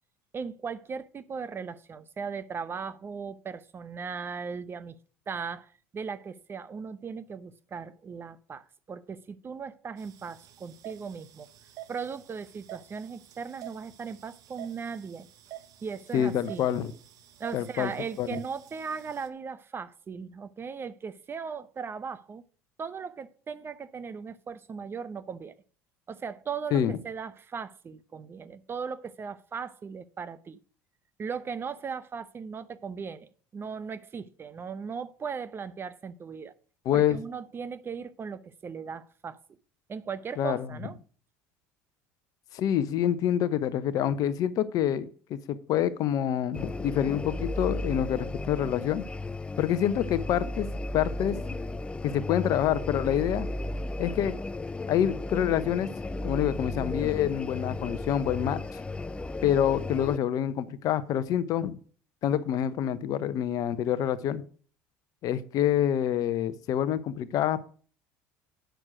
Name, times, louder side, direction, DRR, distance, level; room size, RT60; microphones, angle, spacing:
voice 1, 0.3-5.0 5.3-11.5 11.9-15.3 15.8-16.6 17.4-22.4 22.8-25.6 26.1-30.6 31.2-36.5 36.9-39.4 39.9-41.0, right 6 dB, 30° right, 0.8 m, -38 dB
sound 1, 10.0-19.3, right 14 dB, 55° right, 1.1 m, -49 dB
voice 2, 16.1-16.9 17.5-17.9 18.2-18.3 26.7-26.9 36.8-37.2 40.4-40.7 42.5-49.0 49.6-50.7 50.9-51.4 52.0-53.5 54.0-54.4 54.9-55.9 56.2-58.8 59.4-61.8 62.2-64.4 65.2-67.7, left 10 dB, 55° left, 0.8 m, -27 dB
sound 2, 46.5-60.2, left 2 dB, 15° left, 0.4 m, -34 dB
9.2 x 6.3 x 4.9 m
hypercardioid pair, 75°, 7 cm